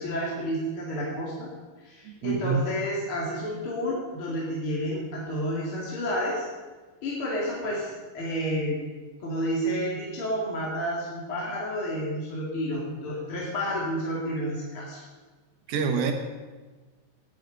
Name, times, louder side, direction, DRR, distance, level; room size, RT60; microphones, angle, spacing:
voice 1, 0.0-1.5 1.8-6.5 7.0-8.8 9.2-15.0, equal, 40° left, -4 dB, 3.0 m, -30 dB
voice 2, 2.1-2.7 15.7-16.1, right 6 dB, 90° right, 5 dB, 3.3 m, -26 dB
18.5 x 9.7 x 5.3 m, 1.3 s
omnidirectional pair, 4.1 m